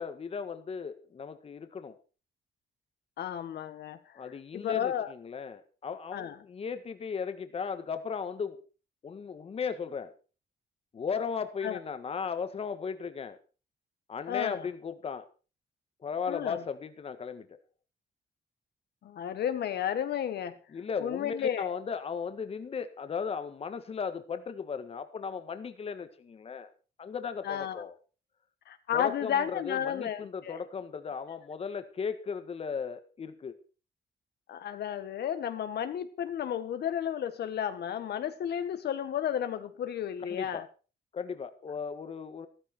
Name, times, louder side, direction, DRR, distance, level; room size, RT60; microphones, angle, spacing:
voice 1, 0.0-2.0 4.1-8.6 9.0-10.1 10.9-13.4 14.1-15.3 16.0-17.5 20.7-26.7 27.0-27.9 28.9-33.6 40.2-40.7 41.1-42.5, left 6 dB, 35° left, 1.6 m, -36 dB
voice 2, 3.2-4.2 4.5-5.1 6.1-6.4 11.6-11.8 14.3-14.7 16.3-16.6 19.0-20.5 21.0-21.7 27.4-27.8 28.7-30.6 34.5-40.6, left 9 dB, 70° left, 1.5 m, -32 dB
14.5 x 14.0 x 4.5 m
wide cardioid pair, 165°, 18 cm